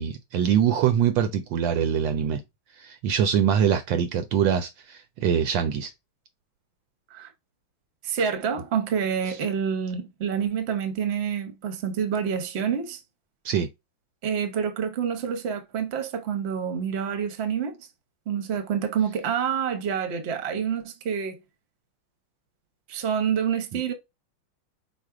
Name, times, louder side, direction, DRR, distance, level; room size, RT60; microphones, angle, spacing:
voice 1, 0.0-2.4 2.8-5.9 13.4-13.7, right 8 dB, 75° right, 1.1 m, -23 dB
voice 2, 8.0-13.0 14.2-17.8 18.3-21.4 22.9-23.9, right 7 dB, 50° right, 0.7 m, -27 dB
4.9 x 2.0 x 4.8 m
omnidirectional pair, 2.3 m